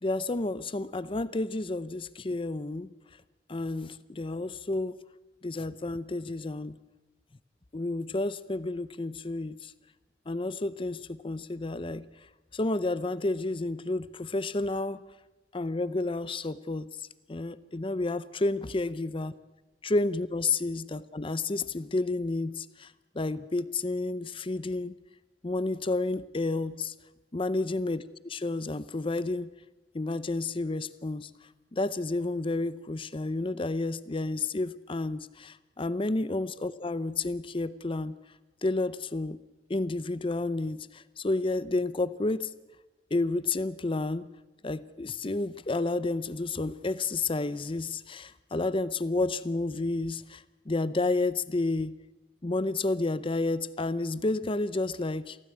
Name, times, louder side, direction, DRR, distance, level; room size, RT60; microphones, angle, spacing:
voice 1, 0.0-2.9 3.5-5.0 5.4-6.7 7.7-9.7 10.3-12.0 12.5-15.0 15.5-16.9 17.3-19.3 19.8-24.9 25.4-26.9 27.3-29.5 29.9-31.3 31.7-38.1 38.6-39.4 39.7-42.5 43.1-44.3 44.6-51.9 52.4-55.4, left 2 dB, 30° left, 15 dB, 0.6 m, -30 dB
24.0 x 16.0 x 8.5 m, 1.1 s
head